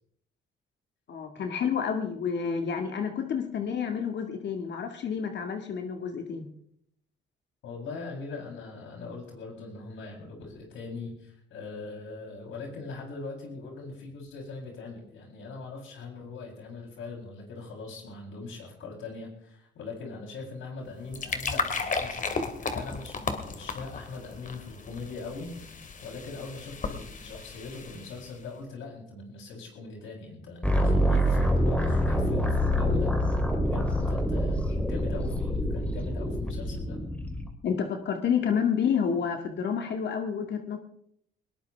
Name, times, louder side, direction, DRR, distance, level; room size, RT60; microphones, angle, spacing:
voice 1, 1.1-6.5 37.6-40.8, left 7 dB, 60° left, 4 dB, 2.0 m, -29 dB
voice 2, 7.6-25.7 26.0-33.1 33.6-37.0, left 3 dB, 80° left, -1 dB, 7.9 m, -41 dB
sound 1, 20.9-28.4, left 4 dB, 40° left, 2.3 m, -35 dB
sound 2, 30.6-37.5, equal, 5° left, 3.3 m, -26 dB
20.5 x 19.5 x 3.5 m, 0.70 s
cardioid pair, 90°, 20 cm